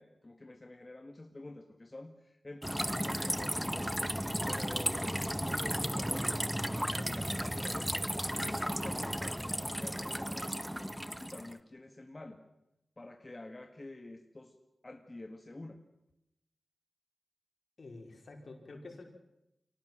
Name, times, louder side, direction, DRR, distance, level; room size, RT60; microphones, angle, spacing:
voice 1, 0.0-4.1 4.5-8.0 8.3-12.4 13.0-14.6 14.8-15.8, left 2 dB, 35° left, 5 dB, 2.0 m, -48 dB
sound 1, 2.6-11.5, equal, 5° right, 1.3 m, -34 dB
voice 2, 17.8-19.0, left 2 dB, 65° left, 3 dB, 5.2 m, -48 dB
24.5 x 18.5 x 7.6 m, 0.88 s
cardioid pair, 50°, 0 cm